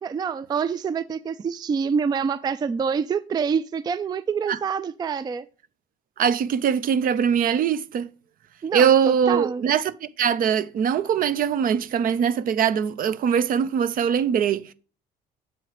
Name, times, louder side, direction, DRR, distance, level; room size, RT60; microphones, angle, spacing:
voice 1, 0.0-5.5 8.6-9.6, right 6 dB, 25° right, 0.4 m, -26 dB
voice 2, 6.2-8.1 8.7-14.7, right 8 dB, 55° right, 0.7 m, -22 dB
7.7 x 4.5 x 4.8 m
cardioid pair, 110°, 17 cm